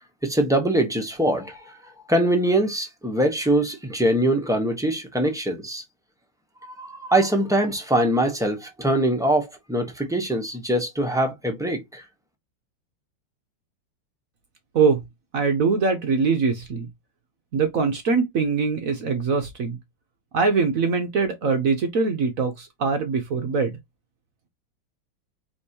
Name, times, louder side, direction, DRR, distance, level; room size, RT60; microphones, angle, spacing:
voice 1, 0.2-5.8 6.6-12.0, right 1 dB, 5° right, 0.7 m, -23 dB
voice 2, 15.3-16.9 17.5-19.8 20.3-23.8, right 4 dB, 60° right, 0.9 m, -22 dB
4.9 x 3.5 x 2.8 m
omnidirectional pair, 2.1 m